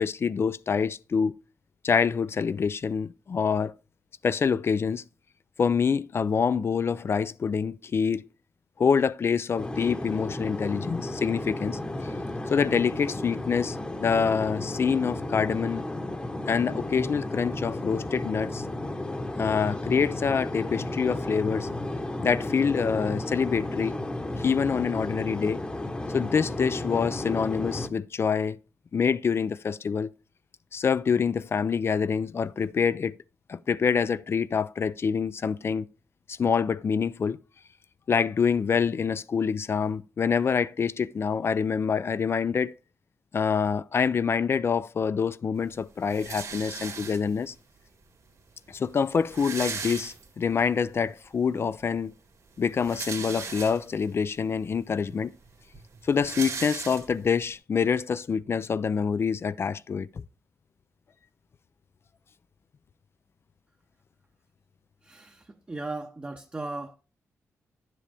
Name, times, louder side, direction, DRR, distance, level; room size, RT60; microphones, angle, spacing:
voice 1, 0.0-1.3 1.8-3.7 4.2-5.0 5.6-8.2 8.8-11.8 12.5-15.8 16.5-18.6 19.4-21.7 22.2-24.0 24.4-25.6 26.1-28.6 28.9-30.1 30.7-33.2 33.5-35.9 36.3-37.4 38.1-42.7 43.3-47.5 48.7-52.1 52.6-55.3 56.1-60.1, left 6 dB, 45° left, 0.4 m, -26 dB
sound 1, 9.6-27.9, left 1 dB, 15° left, 1.0 m, -33 dB
sound 2, 46.1-47.5 48.4-48.5 48.7-48.8 49.0-50.6 51.1-51.2 52.6-54.1 54.7-54.8 55.1-57.4, right 5 dB, 65° right, 1.9 m, -37 dB
voice 2, 65.0-66.9, right 2 dB, 20° right, 0.8 m, -37 dB
11.0 x 7.6 x 3.4 m
cardioid pair, 90°, 6 cm